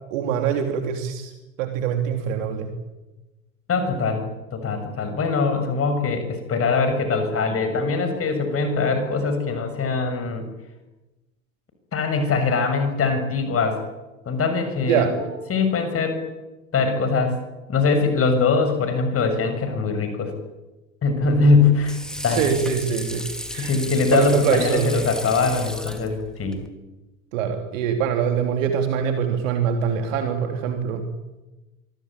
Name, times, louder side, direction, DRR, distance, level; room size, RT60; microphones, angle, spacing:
voice 1, 0.1-1.3 1.6-2.7 14.8-15.2 22.3-23.8 24.1-24.9 27.3-31.0, right 7 dB, 65° right, 5 dB, 3.2 m, -24 dB
voice 2, 3.7-4.2 4.5-10.5 11.9-13.8 14.3-15.2 15.5-16.2 16.7-17.4 17.7-20.3 21.0-22.0 22.2-22.4 23.6-26.6, left 4 dB, 35° left, 7 dB, 6.9 m, -22 dB
Water / Sink (filling or washing), 21.2-26.7, equal, ahead, 4.6 m, -35 dB
25.5 x 23.5 x 8.8 m, 1.1 s
hypercardioid pair, 80°, 41 cm